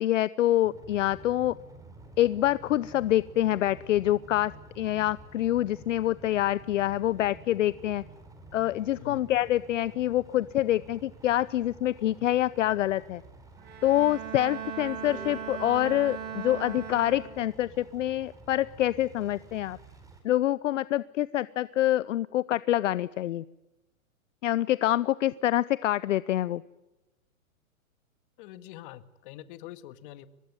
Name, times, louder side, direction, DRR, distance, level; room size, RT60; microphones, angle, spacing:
voice 1, 0.0-1.5 2.2-8.0 8.5-13.2 13.8-19.8 20.2-23.4 24.4-26.6, left 13 dB, 60° left, 18 dB, 0.8 m, -26 dB
sound 1, 0.6-20.2, right 2 dB, 10° right, 4.5 m, -51 dB
Bowed string instrument, 13.6-17.7, right 8 dB, 25° right, 4.6 m, -38 dB
sound 2, 14.8-17.8, right 3 dB, 55° right, 6.6 m, -51 dB
voice 2, 28.4-30.3, left 13 dB, 40° left, 12 dB, 1.8 m, -45 dB
23.5 x 21.0 x 9.4 m, 1.0 s
hypercardioid pair, 145°, 42 cm